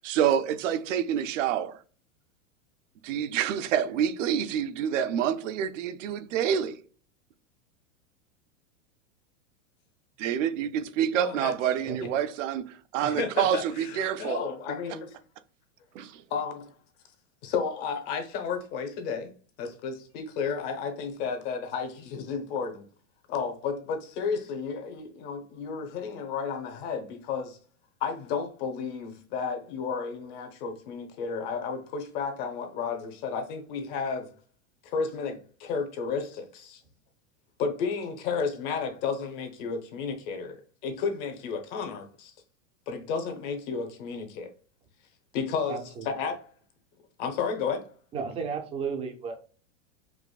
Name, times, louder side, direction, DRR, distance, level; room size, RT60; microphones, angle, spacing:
voice 1, 0.0-1.8 3.0-6.8 10.2-14.5 15.9-16.2, right 9 dB, 75° right, 0.6 m, -27 dB
voice 2, 11.1-11.5 13.0-15.2 16.3-16.7 17.4-19.3 19.6-22.9 23.3-27.6 28.0-34.3 34.8-36.8 37.6-40.6 40.8-42.3 42.9-44.5 45.3-45.8 46.0-46.5 47.2-47.8, left 5 dB, 45° left, 1.0 m, -32 dB
voice 3, 45.7-46.1 48.1-49.4, right 5 dB, 15° right, 0.4 m, -33 dB
4.9 x 2.6 x 2.3 m
supercardioid pair, 140°, 38 cm